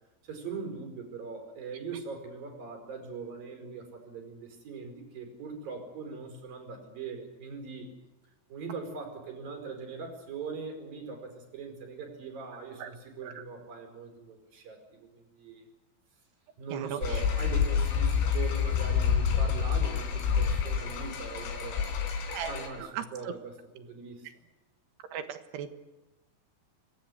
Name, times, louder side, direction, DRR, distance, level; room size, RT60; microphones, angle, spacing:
voice 1, 0.2-7.9 8.5-15.6 16.6-22.1 22.5-24.3, right 4 dB, 50° right, 5 dB, 6.5 m, -41 dB
voice 2, 16.7-17.2 22.3-22.5 22.8-23.3 25.1-25.7, right 9 dB, 70° right, 8 dB, 3.4 m, -38 dB
pots and pans, 17.0-22.7, left 7 dB, 90° left, 5.5 m, -28 dB
29.0 x 20.0 x 8.2 m, 1.0 s
omnidirectional pair, 5.4 m